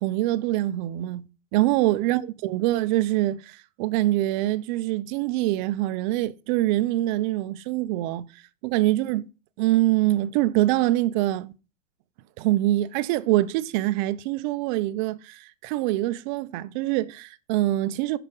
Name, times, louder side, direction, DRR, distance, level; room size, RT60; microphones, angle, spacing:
voice 1, 0.0-8.3 8.6-9.3 9.6-11.5 12.4-18.2, right 16 dB, 35° right, 0.5 m, -24 dB
8.8 x 5.8 x 3.7 m
hypercardioid pair, 130°, 41 cm